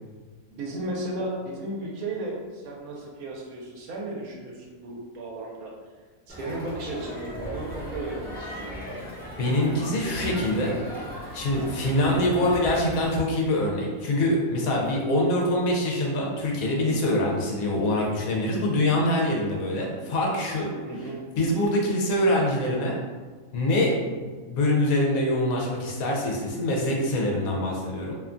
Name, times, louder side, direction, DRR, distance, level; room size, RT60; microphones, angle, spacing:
voice 1, 0.5-5.7 6.3-9.0 20.8-21.2, right 2 dB, 80° right, -1 dB, 1.0 m, -35 dB
Crowd, 6.3-13.1, equal, 10° left, 0.5 m, -37 dB
voice 2, 9.4-11.0 11.3-20.7 21.4-23.0 23.5-28.1, left 1 dB, 75° left, -1 dB, 1.0 m, -24 dB
2.7 x 2.2 x 2.4 m, 1.4 s
omnidirectional pair, 1.5 m